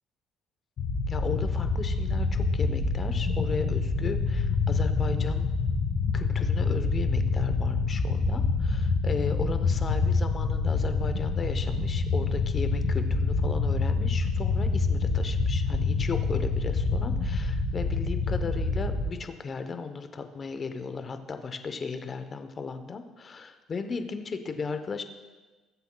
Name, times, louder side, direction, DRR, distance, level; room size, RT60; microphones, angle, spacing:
sound 1, 0.8-19.0, left 4 dB, 55° left, 2.7 m, -26 dB
voice 1, 1.1-5.5 6.1-25.0, left 5 dB, 30° left, 8 dB, 0.9 m, -36 dB
20.5 x 8.0 x 2.3 m, 1.2 s
cardioid pair, 125°, 0 cm